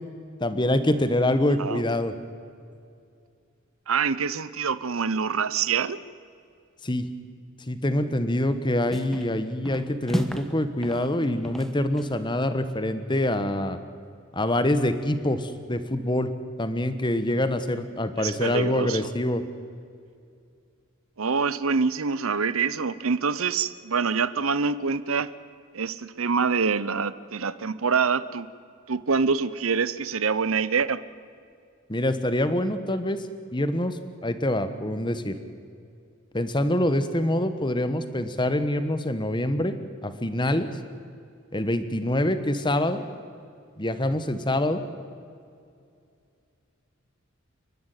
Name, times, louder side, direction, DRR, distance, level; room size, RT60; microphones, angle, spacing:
voice 1, 0.4-2.1 6.8-7.1 7.7-13.8 14.3-16.3 16.6-19.4 31.9-33.3 33.5-35.4 36.3-40.7 41.5-43.0 43.8-44.8, left 1 dB, 20° left, 10 dB, 1.3 m, -25 dB
voice 2, 3.9-6.0 18.2-19.1 21.2-25.3 25.7-28.5 28.9-31.0, right 5 dB, 75° right, 16 dB, 0.8 m, -25 dB
sound 1, 8.3-8.6 8.9-9.3 9.6-10.6 10.8-12.2, equal, ahead, 1.2 m, -33 dB
29.5 x 12.0 x 9.2 m, 2.4 s
head